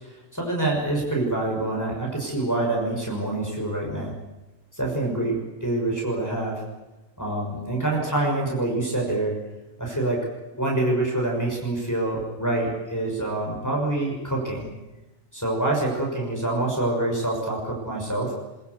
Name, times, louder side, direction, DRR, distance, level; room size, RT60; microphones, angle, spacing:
voice 1, 0.3-4.1 4.7-6.6 7.2-9.3 9.8-10.2 10.5-14.7 15.3-18.3, right 2 dB, 15° left, -2 dB, 6.0 m, -26 dB
23.0 x 22.0 x 8.3 m, 1.0 s
omnidirectional pair, 1.4 m